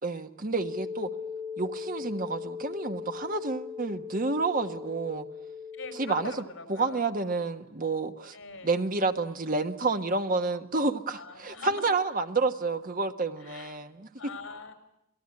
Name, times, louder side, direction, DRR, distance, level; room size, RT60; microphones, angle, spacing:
voice 1, 0.0-1.1 1.6-5.3 6.0-6.3 6.7-8.4 8.6-14.1, right 3 dB, 45° right, 7 dB, 1.4 m, -29 dB
sound 1, 0.6-6.3, left 6 dB, 5° right, 2.6 m, -39 dB
voice 2, 5.7-7.0 8.3-8.8 11.1-11.9 13.4-13.8 14.2-14.7, left 3 dB, 75° left, 7 dB, 4.7 m, -42 dB
27.5 x 19.0 x 9.8 m, 0.83 s
head